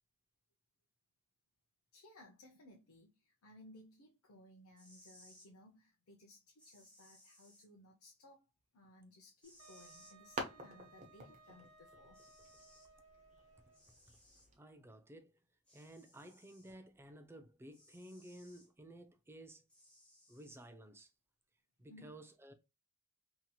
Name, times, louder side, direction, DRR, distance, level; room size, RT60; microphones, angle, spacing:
voice 1, 1.9-8.5 8.7-12.2 16.2-16.3 21.9-22.2, left 1 dB, 75° left, 0.6 m, -60 dB
sound 1, 4.8-5.5 6.6-7.7 9.4-10.2 11.7-11.8 12.1-12.9 13.7-14.5 15.7-16.7 17.7-18.7 19.7-20.7, left 1 dB, 5° left, 0.7 m, -64 dB
sound 2, 9.4-14.6, right 1 dB, 35° right, 0.7 m, -50 dB
Wind instrument woodwind instrument, 9.6-14.0, right 4 dB, 85° right, 0.8 m, -63 dB
voice 2, 14.5-15.3 15.7-19.7 20.3-21.1 21.8-22.5, right 1 dB, 10° right, 0.3 m, -54 dB
2.8 x 2.8 x 2.2 m
head